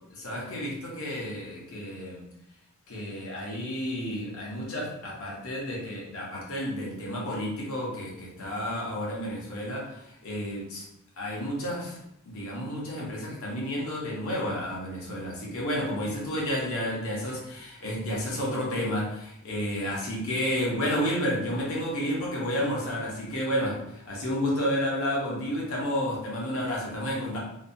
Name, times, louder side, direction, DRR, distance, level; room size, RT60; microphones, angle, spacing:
voice 1, 0.1-2.3 2.9-10.9 11.2-27.4, equal, 65° left, -4 dB, 0.8 m, -31 dB
2.6 x 2.2 x 2.6 m, 0.80 s
head